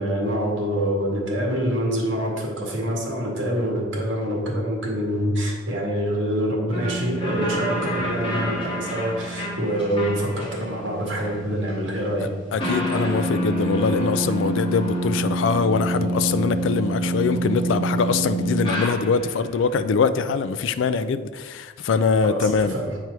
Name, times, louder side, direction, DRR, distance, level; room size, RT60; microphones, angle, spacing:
voice 1, 0.0-12.3 22.2-23.0, equal, 70° right, -2 dB, 2.0 m, -25 dB
sound 1, 6.7-19.4, right 1 dB, 25° left, 1.6 m, -27 dB
voice 2, 12.5-22.7, left 5 dB, 70° left, 12 dB, 0.3 m, -23 dB
8.1 x 4.6 x 4.7 m, 1.4 s
head